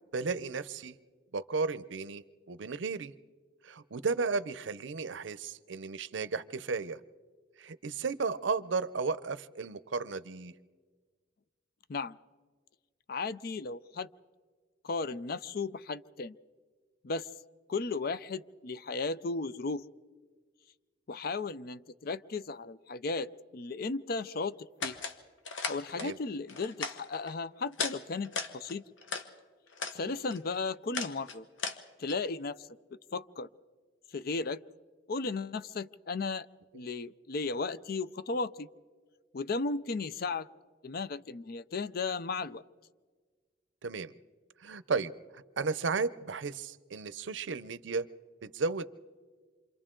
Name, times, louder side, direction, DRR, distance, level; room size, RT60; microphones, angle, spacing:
voice 1, 0.1-0.9 1.3-3.1 3.6-7.0 7.6-10.5 26.0-26.2 30.1-30.2 43.8-44.1 44.6-48.1 48.4-48.9, right 4 dB, 75° right, 16 dB, 0.6 m, -34 dB
voice 2, 13.1-14.1 14.8-16.4 17.0-17.3 17.7-19.8 21.1-25.0 25.7-28.8 29.9-31.5 32.0-32.7 33.1-33.5 34.1-34.6 35.1-36.5 36.7-38.7 39.3-40.5 40.8-42.6, left 3 dB, 55° left, 16 dB, 0.5 m, -35 dB
sound 1, 24.8-25.2 25.5-26.1 26.5-27.3 27.7-28.0 28.2-29.3 29.7-30.0 30.3-32.1, left 4 dB, 90° left, 1.3 m, -37 dB
28.0 x 25.5 x 3.8 m, 1.5 s
head